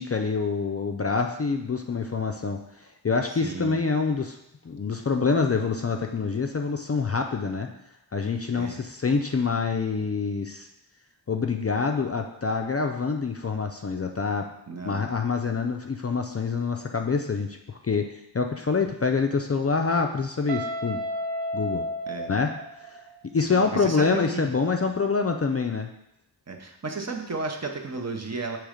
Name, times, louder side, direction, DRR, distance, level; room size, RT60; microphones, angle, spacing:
voice 1, 0.0-4.4 4.6-7.7 8.1-10.7 11.3-14.5 14.9-21.0 21.5-21.8 22.3-22.5 22.9-25.9, left 4 dB, 35° left, 4 dB, 0.4 m, -26 dB
voice 2, 3.3-3.8 8.5-8.8 14.7-15.0 22.1-22.3 23.5-24.5 26.5-28.6, right 3 dB, 40° right, 2 dB, 0.8 m, -33 dB
Guitar, 20.5-23.3, equal, 85° right, 0.9 m, -32 dB
6.1 x 3.1 x 5.0 m, 0.83 s
wide cardioid pair, 70°, 43 cm